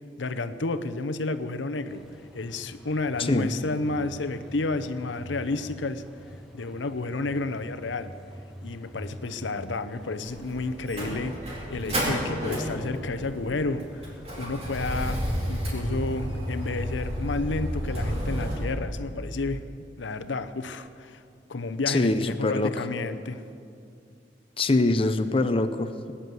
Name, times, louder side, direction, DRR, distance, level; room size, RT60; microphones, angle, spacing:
voice 1, 0.2-8.2 8.6-21.2 21.5-23.4, left 3 dB, 85° left, 11 dB, 0.8 m, -31 dB
sound 1, 1.9-15.5, equal, ahead, 2.0 m, -46 dB
voice 2, 3.2-3.5 21.9-22.7 24.6-26.1, left 2 dB, 30° left, 9 dB, 0.6 m, -24 dB
Motor vehicle (road), 10.2-18.6, equal, 35° right, 4.0 m, -31 dB
19.0 x 9.9 x 7.7 m, 2.4 s
head